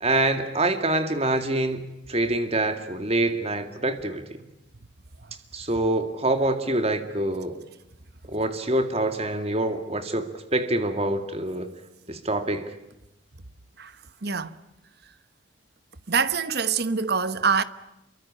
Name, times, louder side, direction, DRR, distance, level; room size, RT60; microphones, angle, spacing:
voice 1, 0.0-1.8 2.1-4.3 5.5-7.6 8.3-11.7 12.1-12.7, right 2 dB, 30° right, 2.2 m, -25 dB
voice 2, 14.2-14.6 16.1-17.6, right 5 dB, 55° right, 1.2 m, -24 dB
28.0 x 24.0 x 8.8 m
head